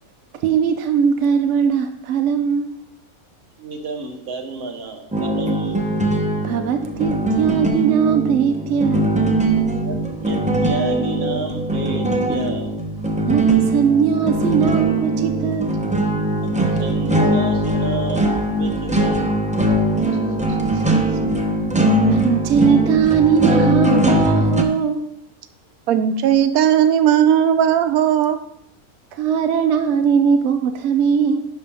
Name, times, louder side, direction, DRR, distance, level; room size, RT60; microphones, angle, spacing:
voice 1, 0.4-2.8 6.4-9.1 13.2-15.8 20.6-21.1 22.1-25.1 29.1-31.5, right 7 dB, 65° right, 6 dB, 0.8 m, -19 dB
voice 2, 3.6-5.8 9.7-13.0 16.4-18.3 18.6-19.4 20.1-20.6, right 3 dB, 45° right, 3 dB, 1.2 m, -31 dB
sound 1, 5.1-24.6, right 1 dB, 10° right, 0.4 m, -20 dB
voice 3, 25.9-28.4, right 9 dB, 85° right, 10 dB, 1.1 m, -16 dB
11.0 x 5.7 x 3.4 m, 0.74 s
omnidirectional pair, 1.5 m